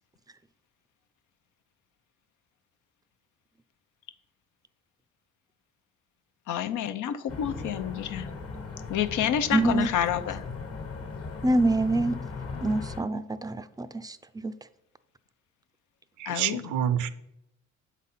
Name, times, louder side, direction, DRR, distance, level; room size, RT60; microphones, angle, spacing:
voice 1, 6.5-8.3 8.9-10.4 12.5-12.7 16.3-16.6, left 10 dB, 80° left, 10 dB, 0.7 m, -29 dB
sound 1, 7.3-13.0, left 4 dB, 50° left, 1.3 m, -38 dB
voice 2, 9.5-9.9 11.4-12.2 12.6-14.2 14.4-14.5, right 2 dB, 15° right, 12 dB, 0.4 m, -25 dB
voice 3, 16.2-17.1, right 9 dB, 75° right, 14 dB, 0.6 m, -27 dB
7.5 x 4.1 x 5.6 m, 0.83 s
cardioid pair, 90°, 30 cm